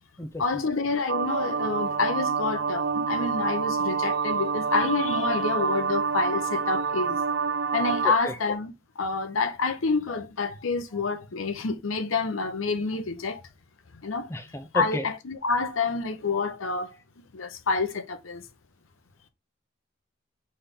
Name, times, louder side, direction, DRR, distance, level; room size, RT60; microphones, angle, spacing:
voice 1, 0.4-7.2 7.7-13.4 14.0-14.3 14.7-17.0 17.3-18.4, left 4 dB, 90° left, 0.8 m, -28 dB
sound 1, 1.1-8.2, right 5 dB, 65° right, 0.4 m, -27 dB
voice 2, 14.3-15.0, left 1 dB, 15° left, 0.5 m, -31 dB
4.3 x 3.4 x 3.6 m
head